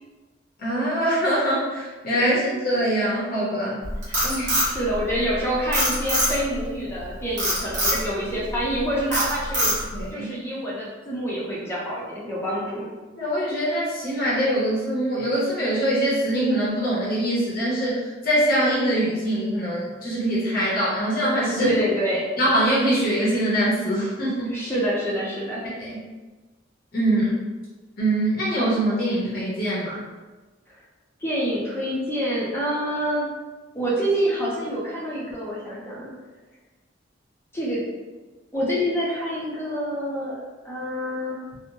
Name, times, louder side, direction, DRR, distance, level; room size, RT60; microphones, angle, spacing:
voice 1, 0.6-3.8 4.2-4.5 9.9-10.3 13.2-18.0 18.2-21.7 22.4-24.5 25.8-26.0 26.9-27.3 28.0-29.9, right 1 dB, 50° left, -7 dB, 0.7 m, -23 dB
Frog, 3.8-5.3 5.7-6.6 7.4-8.0 8.5-8.8 9.1-10.0, equal, 45° right, 1.1 m, -23 dB
voice 2, 4.7-9.7 10.1-12.9 21.6-22.2 24.4-25.6 31.2-33.3 33.7-36.1 37.5-37.8 38.5-41.4, equal, 15° left, -6 dB, 0.6 m, -27 dB
2.9 x 2.0 x 2.6 m, 1.3 s
head